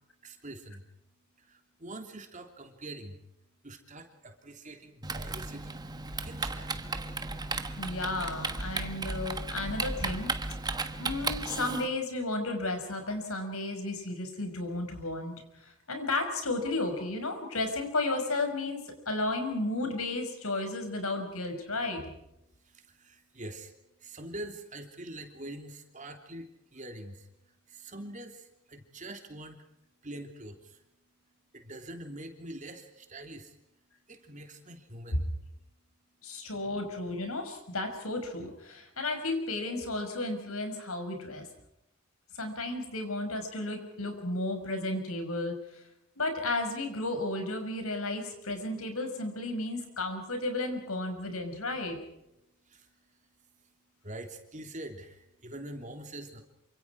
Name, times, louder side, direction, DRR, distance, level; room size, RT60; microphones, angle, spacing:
voice 1, 0.2-0.9 1.4-3.2 3.6-5.8 6.2-6.9 22.5-29.6 30.0-30.8 31.5-33.6 34.1-35.3 52.6-53.7 54.0-56.4, right 1 dB, 35° right, 4 dB, 3.2 m, -45 dB
Typing, 5.0-11.9, right 3 dB, 20° right, 1.2 m, -35 dB
voice 2, 7.8-10.3 11.0-22.0 36.2-41.5 42.3-45.6 46.2-52.0, left 2 dB, 80° left, 5 dB, 6.1 m, -33 dB
28.0 x 26.0 x 4.8 m, 0.83 s
head